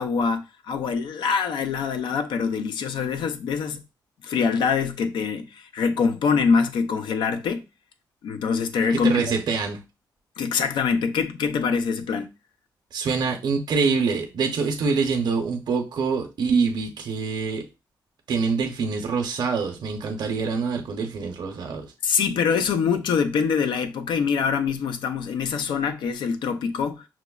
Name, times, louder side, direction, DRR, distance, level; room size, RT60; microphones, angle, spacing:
voice 1, 0.0-3.8 4.2-7.6 8.2-9.1 10.4-12.3 22.0-27.1, left 6 dB, 80° left, 0.5 m, -24 dB
voice 2, 8.9-9.8 12.9-17.6 18.3-21.9, right 5 dB, 60° right, 0.6 m, -25 dB
5.9 x 2.0 x 2.3 m
cardioid pair, 95°, 8 cm